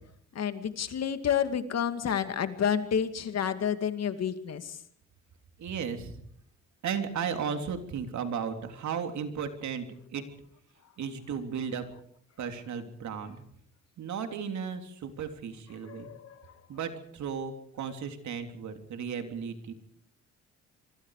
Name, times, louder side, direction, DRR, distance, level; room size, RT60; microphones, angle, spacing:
voice 1, 0.3-4.8 15.9-16.4, left 8 dB, 55° left, 9 dB, 2.5 m, -30 dB
voice 2, 5.6-6.2 6.8-10.2 11.0-11.8 12.4-13.4 14.0-16.1 16.7-19.7, right 7 dB, 70° right, 7 dB, 3.4 m, -35 dB
26.5 x 23.5 x 5.0 m, 0.65 s
cardioid pair, 90°, 30 cm